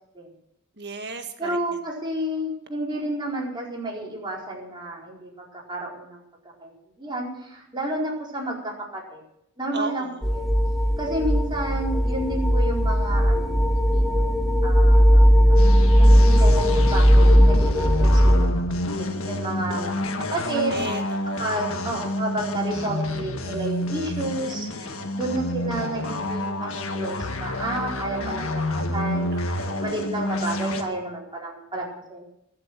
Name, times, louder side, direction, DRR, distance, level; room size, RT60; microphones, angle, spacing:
voice 1, 0.8-1.8 9.7-10.3 20.7-21.4 24.7-25.1 29.3-29.8, right 3 dB, 50° right, 6 dB, 1.8 m, -35 dB
voice 2, 1.4-6.2 6.6-9.2 9.6-10.1 10.3-10.5 11.0-15.3 16.0-19.9 20.3-20.8 21.4-29.3 29.8-32.2, right 1 dB, 20° right, -2 dB, 4.4 m, -31 dB
sound 1, 10.2-18.5, equal, ahead, 1.1 m, -17 dB
sound 2, 15.6-30.8, left 1 dB, 65° left, 1.7 m, -29 dB
22.0 x 7.8 x 6.1 m, 0.78 s
head